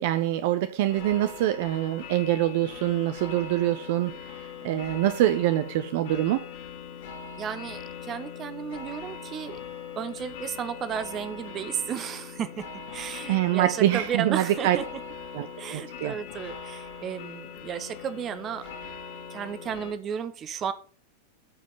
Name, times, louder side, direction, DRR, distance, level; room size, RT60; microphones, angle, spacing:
voice 1, 0.0-4.1 4.6-6.4 13.3-14.8 15.3-16.2, right 13 dB, 50° right, 0.7 m, -25 dB
sound 1, 0.9-19.9, left 7 dB, 55° left, 2.3 m, -41 dB
voice 2, 7.4-9.6 10.0-12.6 12.9-14.8 15.6-18.6 19.3-20.7, right 8 dB, 30° right, 1.1 m, -33 dB
14.0 x 5.2 x 5.6 m
figure-of-eight pair, 90°, 0 cm